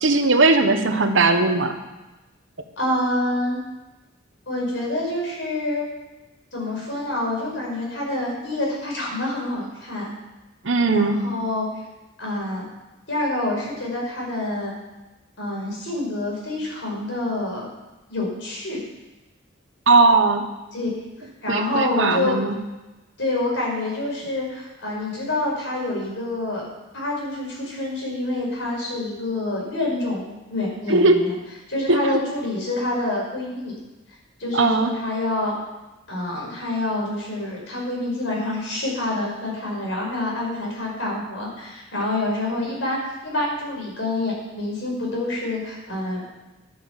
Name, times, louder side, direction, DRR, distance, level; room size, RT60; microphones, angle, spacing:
voice 1, 0.0-1.8 10.6-11.2 19.9-20.5 21.5-22.5 30.9-31.2 31.9-32.1 34.5-34.9, right 3 dB, 70° right, 7 dB, 1.2 m, -18 dB
voice 2, 2.8-3.6 4.5-5.8 6.5-10.1 10.9-11.7 12.2-12.6 13.1-14.7 15.4-17.7 18.1-18.8 20.7-20.9 21.4-22.3 23.2-26.7 26.9-31.3 31.7-33.8 34.4-35.5 36.1-43.0 43.2-46.2, left 2 dB, 65° left, -3 dB, 5.2 m, -27 dB
11.0 x 9.1 x 7.2 m, 1.1 s
head